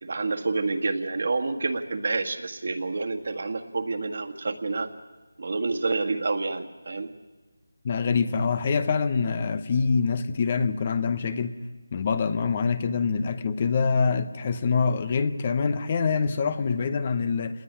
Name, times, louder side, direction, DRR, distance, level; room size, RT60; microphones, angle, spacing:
voice 1, 0.0-4.9 5.4-7.1, right 3 dB, 50° right, 1.8 m, -28 dB
voice 2, 7.8-11.5 11.9-17.6, left 5 dB, 25° left, 0.8 m, -25 dB
27.0 x 20.0 x 10.0 m
figure-of-eight pair, 170°, 0 cm